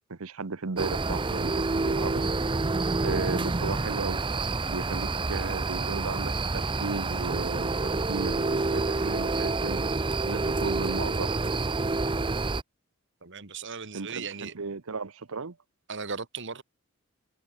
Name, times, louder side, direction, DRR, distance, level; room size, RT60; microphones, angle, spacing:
voice 1, 0.1-2.2 3.0-4.2 4.7-9.9 10.3-11.3 13.9-15.6, right 4 dB, 75° right, 1.0 m, -35 dB
sound 1, 0.8-12.6, right 3 dB, 25° right, 0.6 m, -28 dB
voice 2, 13.2-14.5 15.9-16.6, right 5 dB, 55° right, 1.8 m, -37 dB
head